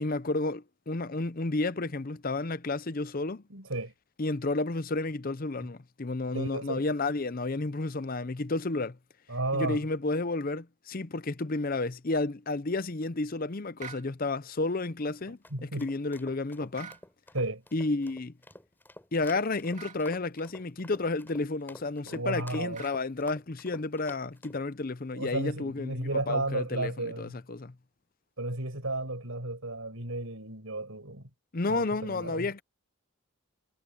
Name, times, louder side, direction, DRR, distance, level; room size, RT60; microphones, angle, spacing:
voice 1, 0.0-3.4 4.2-9.0 9.5-16.9 17.7-18.3 19.1-27.7 31.5-32.6, left 3 dB, 40° left, 0.7 m, -31 dB
voice 2, 3.5-3.9 6.3-6.9 9.3-9.8 15.5-15.9 17.3-17.6 22.1-22.8 25.1-27.4 28.4-31.3 31.7-32.5, right 2 dB, 70° right, 5.6 m, -33 dB
sound 1, 13.8-14.1 16.7-17.0 19.7-20.0 22.7-23.0, right 7 dB, 35° right, 2.7 m, -44 dB
sound 2, 15.2-24.6, left 1 dB, 10° left, 3.8 m, -51 dB
head